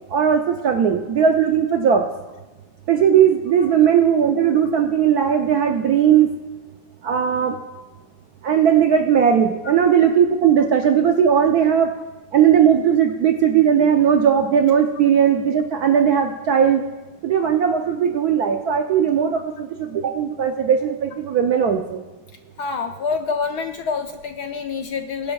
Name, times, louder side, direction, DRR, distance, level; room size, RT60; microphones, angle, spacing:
voice 1, 0.1-2.0 2.9-6.3 7.0-7.6 8.4-11.9 12.3-16.8 17.2-22.0, right 8 dB, 70° right, 4 dB, 0.9 m, -18 dB
voice 2, 22.6-25.3, left 5 dB, 65° left, 5 dB, 1.1 m, -27 dB
21.5 x 11.5 x 2.3 m, 1.1 s
omnidirectional pair, 2.2 m